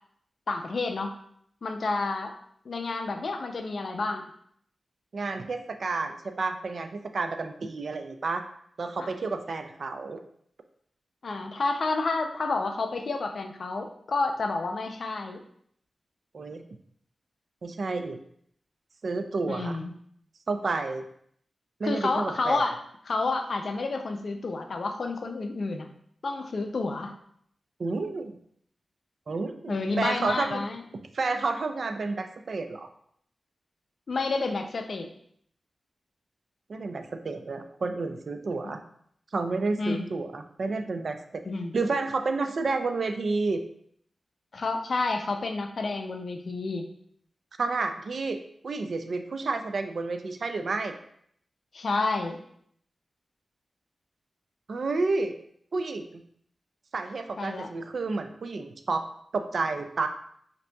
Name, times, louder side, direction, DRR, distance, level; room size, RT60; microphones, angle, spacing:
voice 1, 0.5-1.2 1.6-2.3 2.7-4.2 9.0-9.1 11.2-15.4 19.5-19.9 21.8-22.8 23.0-25.9 26.2-27.1 29.7-30.8 34.1-35.1 38.6-38.7 39.8-40.1 41.5-41.7 44.5-46.9 51.7-52.4 57.4-57.7, left 3 dB, 55° left, 5 dB, 0.4 m, -30 dB
voice 2, 5.1-8.4 8.8-10.2 16.3-16.6 17.6-18.2 19.0-19.8 20.5-21.0 21.8-22.6 27.8-28.4 29.3-30.6 31.1-32.9 36.7-38.8 39.3-41.4 41.7-43.6 47.6-48.4 48.6-50.9 54.7-55.4 55.7-56.1 56.9-59.1 59.3-60.1, right 3 dB, 55° right, 7 dB, 0.3 m, -30 dB
5.2 x 2.6 x 2.2 m, 0.67 s
wide cardioid pair, 160°, 0 cm